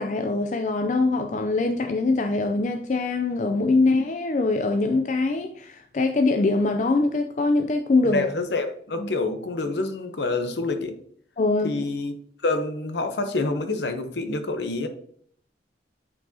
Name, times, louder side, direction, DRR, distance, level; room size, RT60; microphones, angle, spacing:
voice 1, 0.0-8.2 9.0-9.1 11.4-11.8, left 3 dB, 40° left, 0.4 m, -23 dB
voice 2, 8.1-10.9 11.6-12.1 12.4-14.9, left 3 dB, 70° left, 0.8 m, -27 dB
8.6 x 4.6 x 2.8 m
head